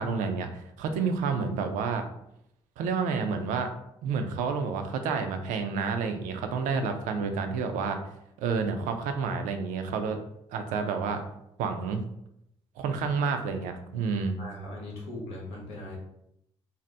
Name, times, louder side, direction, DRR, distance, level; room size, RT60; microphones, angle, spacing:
voice 1, 0.0-2.1 2.8-3.7 4.0-8.0 8.4-10.2 10.5-11.2 11.6-12.0 12.8-14.4, right 5 dB, 75° right, 6 dB, 0.4 m, -29 dB
voice 2, 14.4-16.0, left 1 dB, 85° left, -3 dB, 0.8 m, -39 dB
2.7 x 2.0 x 3.3 m, 0.79 s
hypercardioid pair, 45°, 14 cm